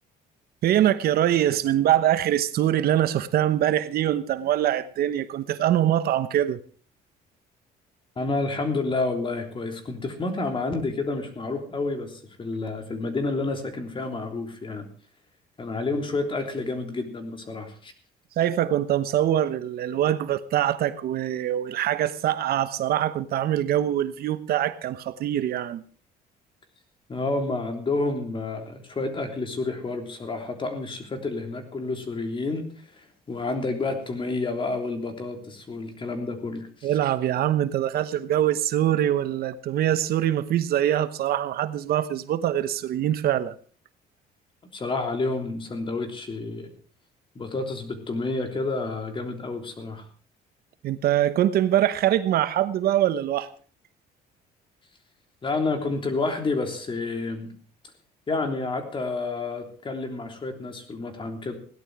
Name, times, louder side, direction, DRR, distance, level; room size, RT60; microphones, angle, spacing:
voice 1, 0.6-6.6 18.4-25.8 36.8-43.6 50.8-53.5, right 11 dB, 65° right, 1.0 m, -23 dB
voice 2, 8.1-14.9 15.6-17.9 27.1-32.6 32.9-33.0 33.3-36.9 44.7-46.7 47.3-50.1 55.4-57.5 58.3-61.6, left 3 dB, 30° left, 3.3 m, -29 dB
17.0 x 11.5 x 4.9 m
cardioid pair, 110°, 17 cm